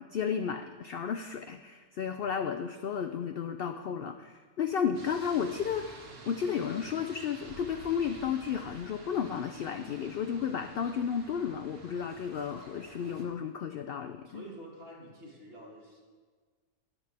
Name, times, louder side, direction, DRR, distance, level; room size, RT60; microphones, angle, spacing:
voice 1, 0.0-14.4, left 7 dB, 70° left, 7 dB, 0.5 m, -33 dB
voice 2, 2.2-2.5 14.3-16.0, right 1 dB, 45° right, -3 dB, 2.4 m, -49 dB
sound 1, 4.9-13.2, right 1 dB, 80° right, 2.1 m, -50 dB
13.0 x 10.5 x 3.5 m, 1.5 s
omnidirectional pair, 1.5 m